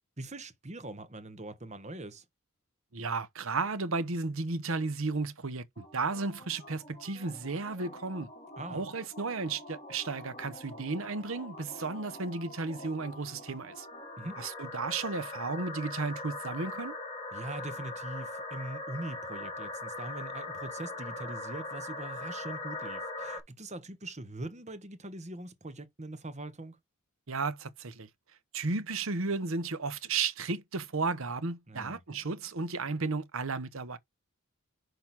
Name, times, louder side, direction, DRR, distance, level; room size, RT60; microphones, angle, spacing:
voice 1, 0.2-2.2 8.6-8.9 14.2-14.4 17.3-26.8 31.7-32.0, right 2 dB, 30° right, 1.2 m, -42 dB
voice 2, 2.9-8.3 8.7-13.9 14.4-16.9 27.3-28.1 28.5-34.0, right 4 dB, 65° right, 0.9 m, -34 dB
sound 1, 5.8-23.4, left 2 dB, 30° left, 3.4 m, -42 dB
6.0 x 4.9 x 6.0 m
head